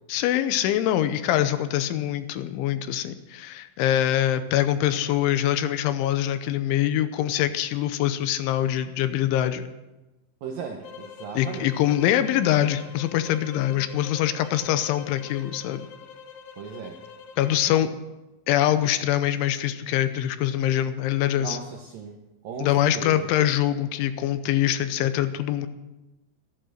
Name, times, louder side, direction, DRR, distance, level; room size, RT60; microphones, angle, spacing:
voice 1, 0.1-9.7 11.3-15.8 17.4-17.9 18.5-21.6 22.6-25.7, left 12 dB, 80° left, 11 dB, 3.2 m, -24 dB
voice 2, 10.4-11.7 16.6-17.0 21.4-22.2 22.4-23.3, right 5 dB, 75° right, 2 dB, 2.1 m, -36 dB
sound 1, 10.8-17.6, left 7 dB, 65° left, 2.4 m, -44 dB
14.0 x 11.5 x 6.6 m, 1.0 s
omnidirectional pair, 5.5 m